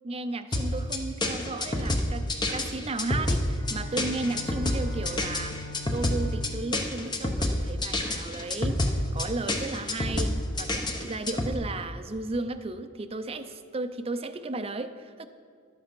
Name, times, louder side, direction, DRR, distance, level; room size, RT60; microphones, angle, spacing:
voice 1, 0.0-5.6 5.9-15.3, right 2 dB, 25° right, 8 dB, 0.5 m, -34 dB
sound 1, 0.5-11.5, left 1 dB, 20° left, 0.8 m, -28 dB
Bowed string instrument, 3.4-8.3, left 2 dB, 65° left, 1.9 m, -44 dB
12.0 x 8.1 x 5.2 m, 2.1 s
head